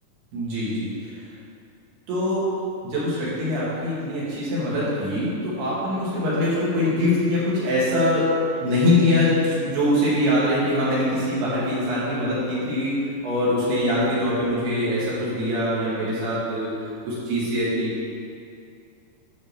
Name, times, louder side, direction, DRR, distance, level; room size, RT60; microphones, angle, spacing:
voice 1, 0.3-0.9 2.1-2.5 2.8-8.3 8.6-13.0 13.2-16.7 17.1-17.9, left 1 dB, 60° right, -9 dB, 4.2 m, -23 dB
11.0 x 4.6 x 6.9 m, 2.5 s
omnidirectional pair, 5.4 m